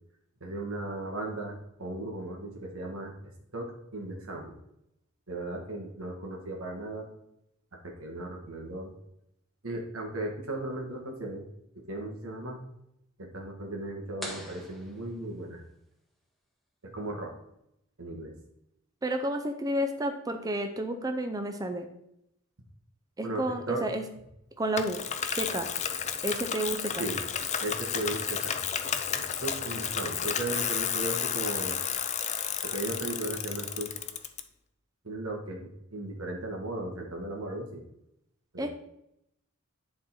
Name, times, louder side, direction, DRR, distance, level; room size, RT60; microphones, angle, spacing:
voice 1, 0.4-3.1 3.5-4.5 5.3-7.1 7.8-8.9 9.6-11.4 11.7-12.6 13.2-15.6 16.8-17.3 18.0-18.3 23.2-23.8 27.0-27.2 27.6-28.6 29.2-31.8 32.6-33.9 35.0-37.8 38.5-38.7, right 2 dB, 70° right, 1 dB, 1.6 m, -36 dB
sound 1, 14.2-15.9, equal, ahead, 1.1 m, -43 dB
voice 2, 19.0-21.9 23.2-24.0 24.6-25.0 25.3-25.7 26.2-27.0 38.6-38.7, right 1 dB, 15° right, 5 dB, 0.5 m, -31 dB
Bicycle, 24.8-34.4, left 8 dB, 35° left, 0.5 m, -32 dB
10.5 x 3.8 x 4.3 m, 0.80 s
head